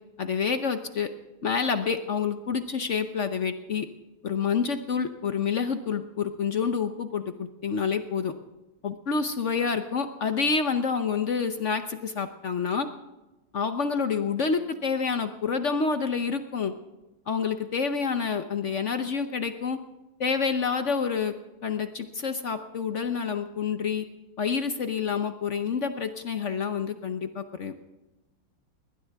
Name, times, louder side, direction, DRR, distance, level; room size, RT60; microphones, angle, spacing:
voice 1, 0.2-1.1 1.4-3.9 4.2-8.3 8.8-12.9 13.5-16.7 17.3-19.8 20.2-21.3 21.6-24.0 24.4-27.7, left 5 dB, 55° left, 8 dB, 0.8 m, -28 dB
20.5 x 19.0 x 3.5 m, 1.1 s
omnidirectional pair, 2.3 m